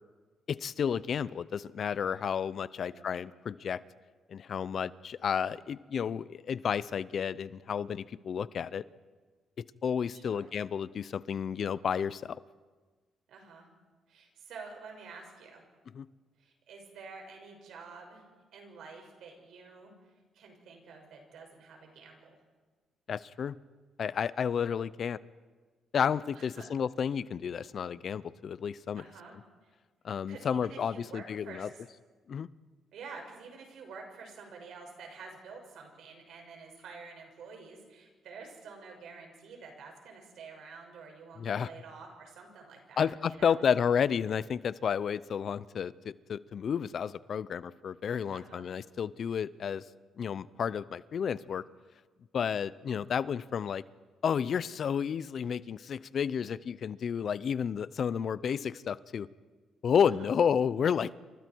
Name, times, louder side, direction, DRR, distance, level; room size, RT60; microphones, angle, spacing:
voice 1, 0.5-3.8 4.3-8.8 9.8-12.4 15.9-16.1 23.1-23.5 24.0-25.2 25.9-29.0 30.0-31.7 32.3-32.5 41.4-41.7 43.0-49.8 50.2-51.6 52.3-53.8 54.2-59.3 59.8-61.1, left 7 dB, 55° left, 18 dB, 0.6 m, -31 dB
voice 2, 2.8-3.1 10.1-10.5 13.3-13.7 14.1-15.6 16.4-18.2 18.5-19.9 20.3-22.4 26.3-26.7 29.0-29.3 29.6-29.7 30.3-31.7 32.9-43.6 48.3-48.7 60.2-60.3, right 4 dB, 75° right, 2 dB, 6.0 m, -49 dB
29.0 x 26.5 x 4.7 m, 1.4 s
cardioid pair, 90°, 0 cm